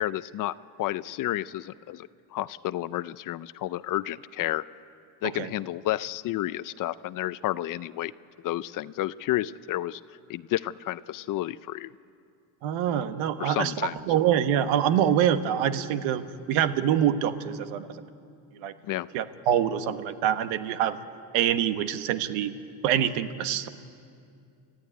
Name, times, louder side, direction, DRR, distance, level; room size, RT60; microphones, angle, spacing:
voice 1, 0.0-4.6 5.2-8.1 8.4-10.0 10.3-11.9 13.4-14.0 18.8-19.1, left 14 dB, 45° left, 16 dB, 0.5 m, -31 dB
voice 2, 12.6-13.7 14.1-16.2 16.5-17.9 18.6-18.7 19.1-21.0 21.3-22.5 22.8-23.7, right 10 dB, 85° right, 10 dB, 1.3 m, -25 dB
29.0 x 13.5 x 10.0 m, 2.4 s
cardioid pair, 135°, 44 cm